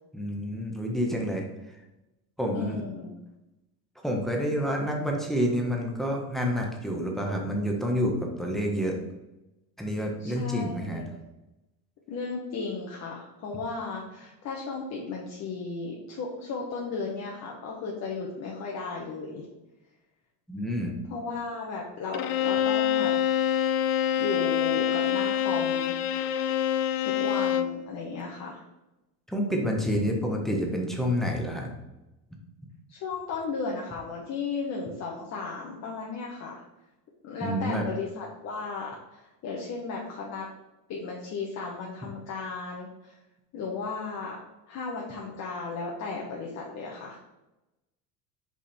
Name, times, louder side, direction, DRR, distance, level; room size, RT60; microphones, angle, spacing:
voice 1, 0.1-1.4 2.4-2.8 4.0-9.0 9.8-11.0 20.5-20.9 29.3-31.7 37.4-37.8, equal, ahead, 0 dB, 1.2 m, -28 dB
voice 2, 2.5-3.1 10.2-11.2 12.1-19.4 21.1-23.1 24.2-25.9 27.0-28.6 32.9-36.6 37.2-40.5 40.9-43.2 43.5-44.4 44.7-47.2, left 4 dB, 45° left, -2 dB, 1.2 m, -35 dB
Bowed string instrument, 22.1-27.8, left 10 dB, 75° left, 0.6 m, -26 dB
5.5 x 4.9 x 4.3 m, 0.97 s
cardioid pair, 135°, 36 cm